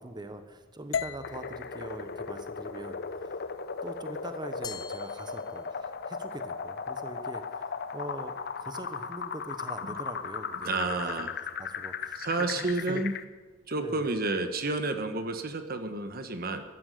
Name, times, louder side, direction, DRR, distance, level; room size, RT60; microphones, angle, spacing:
voice 1, 0.0-3.4 3.8-11.3 11.6-13.0 13.8-14.1, right 1 dB, 20° right, 8 dB, 1.2 m, -43 dB
sound 1, 0.9-5.1, left 7 dB, 80° left, 0.4 m, -40 dB
sound 2, 1.2-13.2, left 5 dB, 55° left, 0.8 m, -37 dB
Glass, 4.6-6.1, left 6 dB, 20° left, 0.6 m, -45 dB
voice 2, 10.6-11.3 12.1-13.1 13.7-16.6, right 2 dB, 50° right, 8 dB, 1.4 m, -30 dB
15.0 x 11.5 x 6.8 m, 1.4 s
head